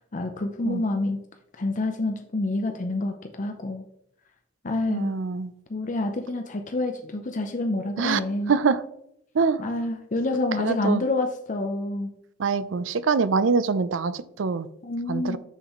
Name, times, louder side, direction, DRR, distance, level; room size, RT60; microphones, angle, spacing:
voice 1, 0.1-1.2 1.6-3.9 4.6-5.1 5.7-8.5 9.6-12.1 14.8-15.4, left 2 dB, 40° left, 5 dB, 0.6 m, -27 dB
voice 2, 4.9-5.5 8.0-8.2 8.5-8.8 9.3-9.6 10.6-11.0 12.4-14.7 15.1-15.4, right 5 dB, 90° right, 15 dB, 0.5 m, -24 dB
7.5 x 6.5 x 3.0 m, 0.76 s
head